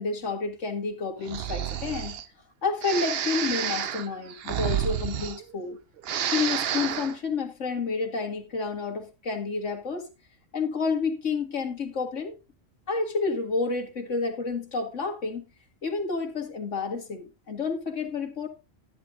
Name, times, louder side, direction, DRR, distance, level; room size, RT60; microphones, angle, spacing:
voice 1, 0.0-2.2 2.6-5.8 6.3-10.1 10.5-12.3 12.9-15.4 15.8-18.5, left 4 dB, 70° left, 2.1 m, -30 dB
Breathing, 1.2-2.3 2.8-5.7 6.0-7.2, right 9 dB, 60° right, 0.8 m, -30 dB
12.5 x 10.0 x 2.6 m
omnidirectional pair, 1.3 m